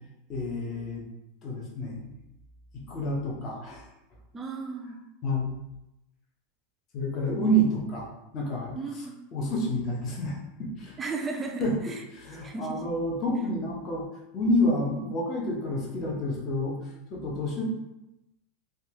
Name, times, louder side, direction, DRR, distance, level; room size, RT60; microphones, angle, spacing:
voice 1, 0.3-1.0 1.4-2.1 2.7-3.8 5.2-5.5 6.9-8.8 9.3-11.0 11.6-11.7 12.1-14.1 14.3-17.6, equal, 25° left, -3 dB, 0.6 m, -29 dB
voice 2, 4.3-5.0 8.7-9.1 11.0-12.0 12.4-12.8, right 4 dB, 15° right, 3 dB, 0.3 m, -35 dB
3.6 x 2.2 x 2.8 m, 0.89 s
supercardioid pair, 170°, 0 cm